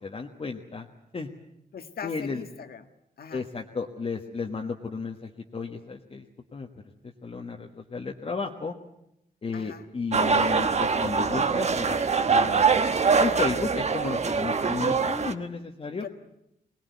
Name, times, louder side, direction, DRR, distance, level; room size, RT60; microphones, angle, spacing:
voice 1, 0.0-0.9 1.1-1.3 2.0-2.4 3.3-6.2 6.5-6.7 7.2-8.7 9.4-12.0 12.3-12.8 13.2-16.0, left 4 dB, 40° left, 1 dB, 1.5 m, -33 dB
voice 2, 1.7-2.9 3.2-3.5 9.5-9.8 16.0-16.1, left 6 dB, 75° left, 8 dB, 1.7 m, -40 dB
sound 1, 10.1-15.3, right 5 dB, 45° right, 1.2 m, -23 dB
23.0 x 19.5 x 9.5 m, 0.81 s
wide cardioid pair, 120°, 16 cm